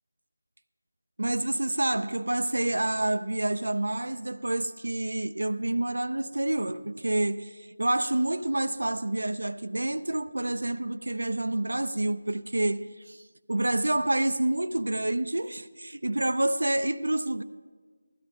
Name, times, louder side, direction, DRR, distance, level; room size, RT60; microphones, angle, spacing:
voice 1, 1.2-13.2 13.5-17.4, right 1 dB, 75° right, 0.4 m, -28 dB
17.0 x 12.5 x 3.5 m
figure-of-eight pair, 165°, 0 cm